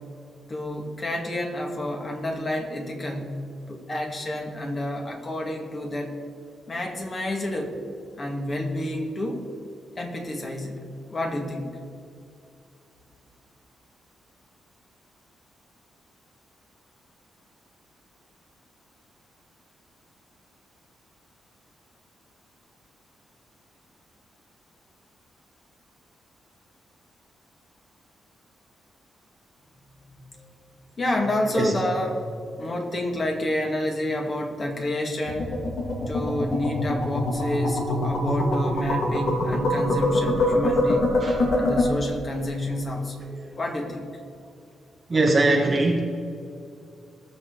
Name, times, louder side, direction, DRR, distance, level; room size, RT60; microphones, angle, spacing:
voice 1, 0.5-3.4 3.7-6.2 6.7-7.8 8.2-9.5 10.0-11.7 30.1-30.5 31.0-32.3 32.6-35.5 36.1-41.1 41.5-43.3 43.6-44.2, left 1 dB, 35° left, 2 dB, 2.2 m, -29 dB
sound 1, 35.3-41.8, left 1 dB, 75° left, 2.8 m, -24 dB
voice 2, 45.1-46.1, right 2 dB, 30° right, 0 dB, 1.2 m, -21 dB
19.5 x 6.9 x 4.0 m, 2.5 s
cardioid pair, 105°, 0 cm